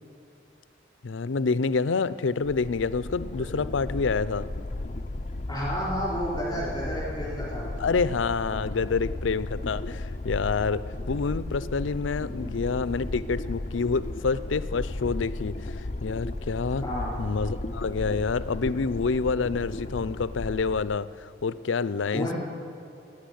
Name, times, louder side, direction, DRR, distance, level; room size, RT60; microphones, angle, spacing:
voice 1, 1.0-4.5 7.8-16.8 17.2-22.3, left 4 dB, 85° left, 16 dB, 0.5 m, -28 dB
sound 1, 2.4-20.8, left 2 dB, 35° left, 0.6 m, -35 dB
voice 2, 5.5-7.7 16.8-17.1 22.1-22.3, equal, 20° left, -6 dB, 3.8 m, -30 dB
16.5 x 8.7 x 10.0 m, 2.7 s
head